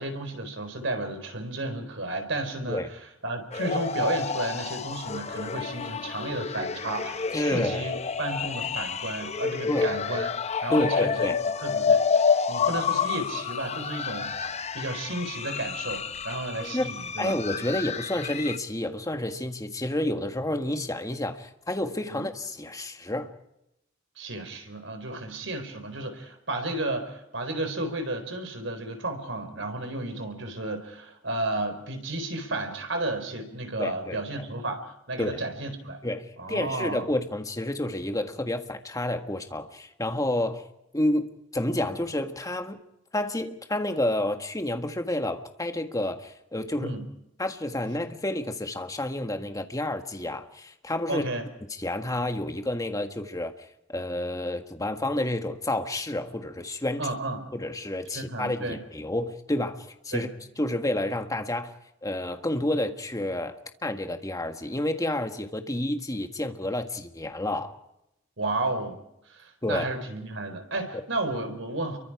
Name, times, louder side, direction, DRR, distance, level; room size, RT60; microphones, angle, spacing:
voice 1, 0.0-2.8 3.2-10.3 10.6-11.3 11.6-17.4 22.1-22.2 24.2-36.0 36.4-37.0 46.8-47.1 51.1-51.4 57.0-57.4 58.1-58.8 60.1-60.3 68.4-69.0 69.3-72.0, right 2 dB, 70° right, 7 dB, 4.3 m, -33 dB
sound 1, 3.5-18.6, left 5 dB, 35° left, 0.8 m, -29 dB
voice 2, 7.3-7.9 9.7-9.9 10.7-11.4 16.6-23.3 33.8-34.5 35.2-35.4 36.0-40.6 40.9-42.8 43.1-46.9 47.4-51.3 51.8-53.5 53.9-57.1 57.5-60.3 60.6-61.7 62.0-67.7 69.6-69.9, left 1 dB, 20° left, 6 dB, 1.7 m, -30 dB
29.5 x 23.5 x 4.9 m, 0.84 s
head